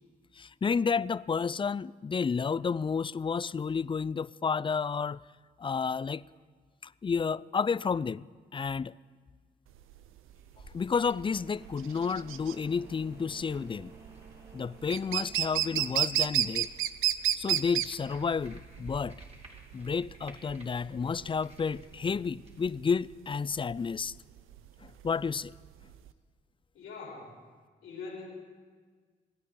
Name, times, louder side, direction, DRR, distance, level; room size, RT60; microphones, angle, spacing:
voice 1, 0.3-5.2 5.6-6.2 6.8-8.3 8.5-9.0 10.7-13.9 14.5-16.7 17.4-19.2 19.7-24.2 24.8-25.5, left 5 dB, 25° left, 0.4 m, -31 dB
sound 1, 9.7-26.1, right 11 dB, 80° right, 0.5 m, -32 dB
sound 2, 10.3-22.6, right 1 dB, 30° right, 3.5 m, -55 dB
sound 3, 11.4-16.5, right 3 dB, 55° right, 4.5 m, -54 dB
voice 2, 26.7-27.4 27.8-28.3, left 4 dB, 80° left, 3.8 m, -42 dB
25.5 x 9.2 x 3.8 m
supercardioid pair, 45°, 21 cm